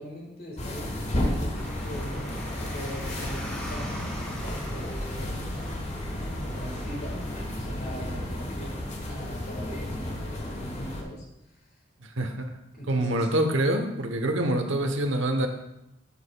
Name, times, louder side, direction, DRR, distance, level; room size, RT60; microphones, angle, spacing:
voice 1, 0.0-5.6 6.4-7.2 7.5-11.7 12.7-13.3, equal, 55° left, -2 dB, 1.7 m, -41 dB
sound 1, 0.6-11.0, left 1 dB, 35° left, 1.2 m, -32 dB
Car, 1.5-7.4, equal, 10° left, 2.4 m, -42 dB
voice 2, 12.0-12.6 12.9-15.5, right 1 dB, 80° right, 5 dB, 1.0 m, -26 dB
10.5 x 7.2 x 2.3 m, 0.85 s
head